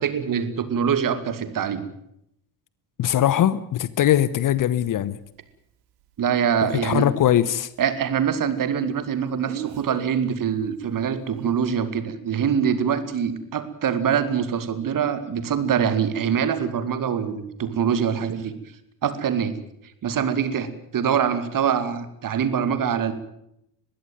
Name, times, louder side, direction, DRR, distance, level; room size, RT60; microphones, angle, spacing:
voice 1, 0.0-1.9 6.2-7.1 7.8-18.5 19.0-19.5 20.0-23.1, right 7 dB, 40° right, 2.6 m, -24 dB
voice 2, 3.0-5.2 6.6-7.7, left 11 dB, 40° left, 1.1 m, -21 dB
Speech, 4.1-4.2 9.4-10.1 11.3-11.6, right 9 dB, 70° right, 2.9 m, -35 dB
21.5 x 15.5 x 9.3 m
figure-of-eight pair, 55°, 50 cm